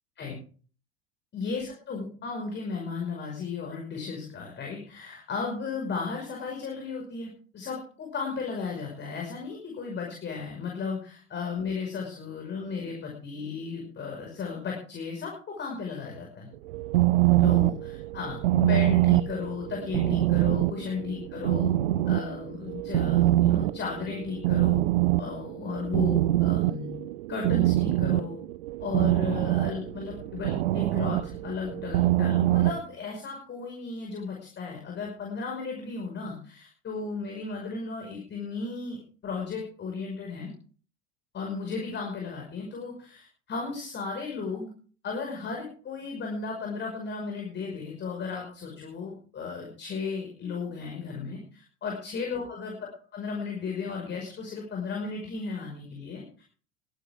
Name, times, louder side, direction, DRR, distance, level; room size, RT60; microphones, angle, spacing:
voice 1, 1.3-16.5 17.4-21.7 22.1-24.8 25.2-27.0 27.3-28.4 28.8-40.5 41.3-44.7 45.0-52.7 53.1-56.4, left 5 dB, 30° left, 0 dB, 5.6 m, -35 dB
sound 1, 16.5-32.8, right 16 dB, 60° right, 0.7 m, -25 dB
23.5 x 10.5 x 3.7 m, 0.42 s
figure-of-eight pair, 75°, 35 cm